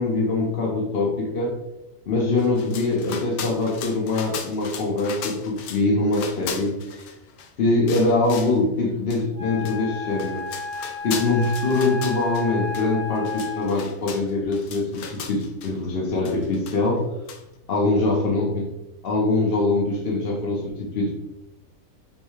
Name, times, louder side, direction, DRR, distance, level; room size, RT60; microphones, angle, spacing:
voice 1, 0.0-1.6 2.1-7.1 7.6-10.4 11.0-17.1 17.7-18.7 19.0-21.1, left 2 dB, 50° left, -3 dB, 0.8 m, -23 dB
sound 1, 2.4-5.8 6.1-7.5 7.9-8.6 9.1-9.2 9.7-9.8 10.1-12.5 12.7-12.9 13.2-15.7 16.3-17.0 17.3-17.4, left 6 dB, 80° left, 1.1 m, -37 dB
Wind instrument woodwind instrument, 9.4-13.9, left 3 dB, 60° right, 0.9 m, -32 dB
5.5 x 2.2 x 3.1 m, 0.91 s
omnidirectional pair, 1.6 m